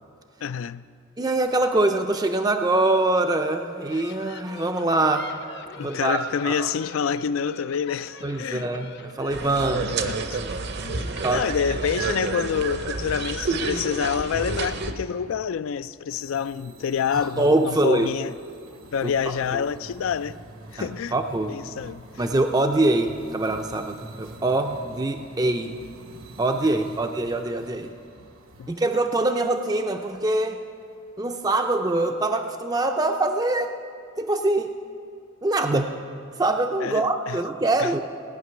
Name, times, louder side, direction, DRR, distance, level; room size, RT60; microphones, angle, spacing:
voice 1, 0.4-0.8 5.8-8.7 9.4-10.4 10.8-18.3 18.9-20.4 20.7-21.1 21.5-22.1 28.6-28.7 36.8-37.4 37.8-38.0, left 7 dB, 70° left, 0.3 m, -28 dB
voice 2, 1.2-5.4 5.8-6.2 6.4-6.7 8.2-9.9 11.2-11.4 17.1-18.1 19.0-19.1 19.5-19.6 20.8-21.6 22.2-25.8 26.4-27.9 28.7-30.6 31.2-33.7 34.2-34.7 35.4-35.9 36.4-38.0, right 2 dB, 15° right, 0.4 m, -24 dB
sound 1, 3.6-9.4, left 4 dB, 50° left, 0.7 m, -43 dB
sound 2, 9.3-14.9, right 3 dB, 50° right, 0.7 m, -29 dB
sound 3, 16.1-31.4, right 1 dB, 75° right, 1.1 m, -46 dB
17.0 x 6.0 x 9.6 m
head